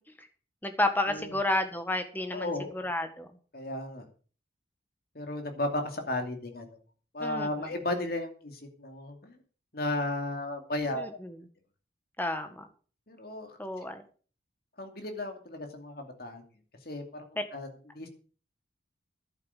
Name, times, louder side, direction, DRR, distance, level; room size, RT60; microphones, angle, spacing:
voice 1, 0.6-3.3 7.2-7.5 10.9-11.4 12.2-12.7 13.6-14.0 17.3-17.4, left 1 dB, 10° left, 7 dB, 1.6 m, -31 dB
voice 2, 2.3-2.8 3.5-4.1 5.1-6.7 7.1-9.4 9.7-11.0 13.1-13.6 14.8-16.4 16.9-17.3 17.5-18.1, left 1 dB, 55° left, 5 dB, 2.6 m, -34 dB
11.0 x 8.9 x 6.7 m, 0.39 s
head